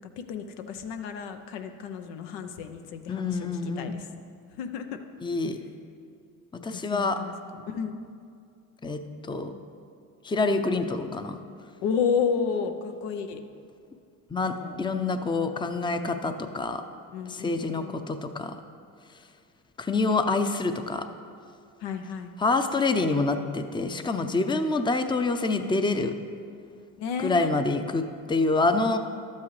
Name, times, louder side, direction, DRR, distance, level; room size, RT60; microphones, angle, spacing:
voice 1, 0.0-3.5 3.8-4.1 4.6-5.0 6.7-8.0 11.8-13.4 14.4-14.8 17.1-18.0 21.8-22.4 27.0-27.6, left 6 dB, 85° left, 7 dB, 0.7 m, -32 dB
voice 2, 3.1-4.0 5.2-5.6 6.6-7.2 8.8-9.5 10.2-11.4 14.3-16.8 17.3-18.5 19.8-21.1 22.4-26.1 27.2-29.0, left 3 dB, 10° left, 8 dB, 0.5 m, -26 dB
12.0 x 8.5 x 3.2 m, 2.4 s
supercardioid pair, 75°, 41 cm